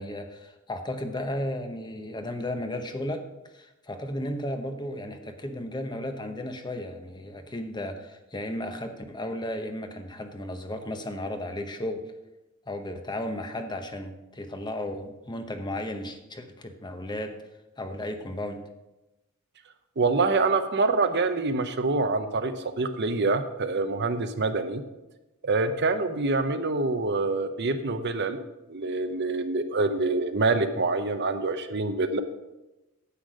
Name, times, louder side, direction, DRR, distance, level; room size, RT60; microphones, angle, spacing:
voice 1, 0.0-3.2 3.5-12.0 12.7-17.3 17.8-18.6, left 1 dB, 20° left, 6 dB, 0.9 m, -34 dB
voice 2, 20.0-24.8 25.4-28.4 28.7-32.2, right 3 dB, 55° right, 8 dB, 0.8 m, -26 dB
10.0 x 8.1 x 5.0 m, 1.0 s
head